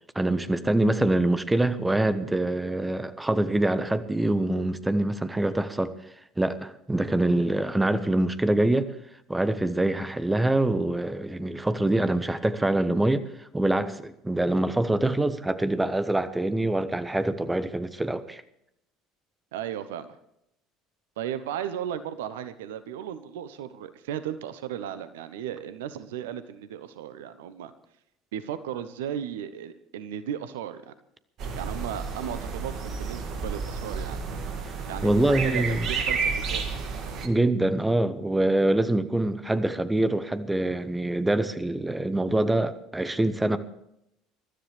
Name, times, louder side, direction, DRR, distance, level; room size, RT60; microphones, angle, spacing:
voice 1, 0.1-5.9 6.4-8.9 9.3-18.4 35.0-35.9 37.2-43.6, right 1 dB, 10° right, 1.2 m, -25 dB
voice 2, 19.5-20.1 21.2-27.7 28.3-30.9 31.5-34.2 34.9-36.7, right 10 dB, 70° right, 0.9 m, -35 dB
sound 1, 31.4-37.3, right 5 dB, 50° right, 2.2 m, -31 dB
22.5 x 13.0 x 3.3 m
figure-of-eight pair, 65°, 0 cm